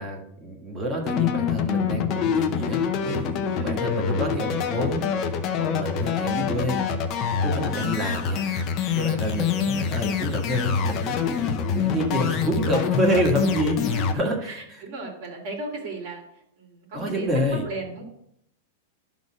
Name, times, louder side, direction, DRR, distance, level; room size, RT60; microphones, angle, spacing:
voice 1, 0.0-5.1 5.5-6.8 7.4-8.4 8.9-13.8 14.1-14.4 16.9-17.6, equal, 15° right, 1 dB, 1.6 m, -28 dB
sound 1, 1.1-14.1, left 7 dB, 25° left, 0.7 m, -25 dB
voice 2, 6.5-7.1 7.8-8.0 9.3-9.6 13.8-18.0, right 2 dB, 45° right, 0 dB, 2.3 m, -37 dB
11.5 x 4.0 x 6.3 m, 0.73 s
supercardioid pair, 175°, 0 cm